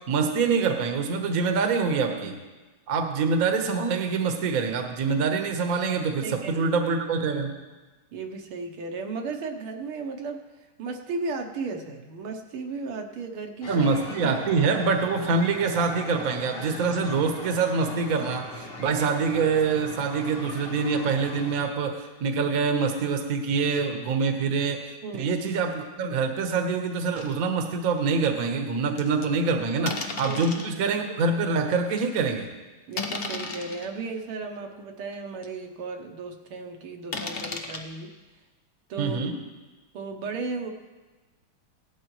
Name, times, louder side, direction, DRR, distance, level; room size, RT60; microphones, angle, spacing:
voice 1, 0.0-2.4 2.9-7.5 13.7-24.9 25.2-32.5 39.0-39.4, right 4 dB, 50° right, 4 dB, 1.3 m, -25 dB
voice 2, 6.2-6.7 8.1-10.4 10.8-13.9 14.2-14.4 25.0-25.3 29.7-29.9 30.3-30.4 30.7-30.8 32.9-38.1 38.9-39.2 39.9-40.7, right 4 dB, 75° right, 3 dB, 1.8 m, -35 dB
sound 1, 13.6-21.6, left 2 dB, 40° left, 0.8 m, -40 dB
sound 2, 27.2-27.4 27.9-28.0 29.0-29.3 29.9-30.7 31.4-31.5 32.0-32.2 32.9-33.9 34.6-34.7 35.1-35.2 35.4-35.5 37.1-37.8, left 4 dB, 65° left, 0.5 m, -34 dB
17.5 x 12.0 x 3.1 m, 1.2 s
omnidirectional pair, 2.4 m